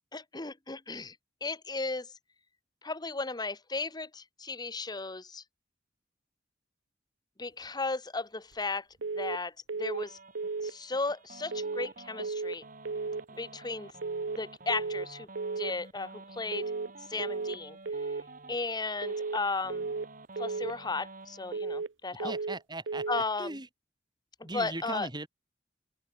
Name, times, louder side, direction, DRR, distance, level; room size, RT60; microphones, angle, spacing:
voice 1, 0.1-1.1 1.4-2.1 2.8-5.4 7.4-8.8 9.1-9.5 9.8-10.2 10.6-12.6 13.4-13.9 14.3-15.3 15.6-16.7 17.1-17.8 18.5-19.9 20.4-22.3 23.1-23.6 24.4-25.1, left 3 dB, 25° left, 1.4 m, -35 dB
sound 1, 9.0-9.4 9.7-10.1 10.3-10.7 11.5-11.9 12.2-12.6 12.8-13.2 14.0-14.4 14.7-15.1 15.3-15.7 16.5-16.9 17.2-17.6 17.8-18.2 19.0-19.4 19.7-20.1 20.4-20.7 21.5-21.9 22.2-22.6 22.9-23.3, right 4 dB, 85° right, 0.7 m, -34 dB
sound 2, 9.9-21.6, right 3 dB, 50° right, 7.7 m, -50 dB
voice 2, 22.2-23.0 23.4-23.7 24.4-25.3, right 2 dB, 25° right, 6.3 m, -38 dB
head